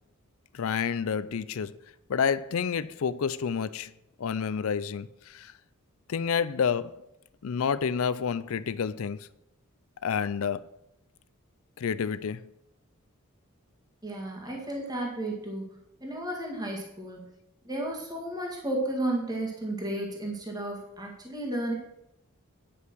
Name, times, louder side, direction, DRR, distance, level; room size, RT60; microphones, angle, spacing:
voice 1, 0.5-1.8 2.1-3.9 4.2-5.5 6.1-7.0 7.4-9.3 10.0-10.6 11.8-12.5 14.5-14.6, left 6 dB, 65° left, 0.4 m, -29 dB
voice 2, 14.0-15.7 16.0-17.2 17.7-21.7, right 1 dB, 15° right, 1.9 m, -33 dB
9.8 x 5.7 x 6.1 m
head